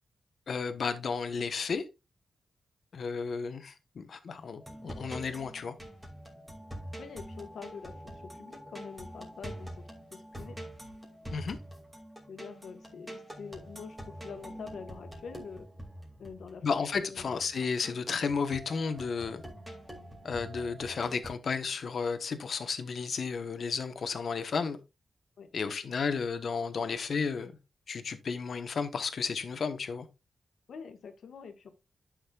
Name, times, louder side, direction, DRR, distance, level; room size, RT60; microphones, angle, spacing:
voice 1, 0.5-1.9 2.9-5.8 11.3-11.6 16.6-19.4 20.2-24.8 25.5-27.5 27.9-30.1, left 5 dB, 60° left, 1.1 m, -33 dB
sound 1, 4.6-21.3, right 1 dB, 10° right, 2.4 m, -45 dB
voice 2, 7.0-10.6 12.3-14.0 14.2-15.7 16.2-16.6 17.0-17.4 25.4-25.5 30.7-31.7, left 5 dB, 80° left, 1.4 m, -45 dB
11.5 x 6.4 x 2.4 m
wide cardioid pair, 120°, 0 cm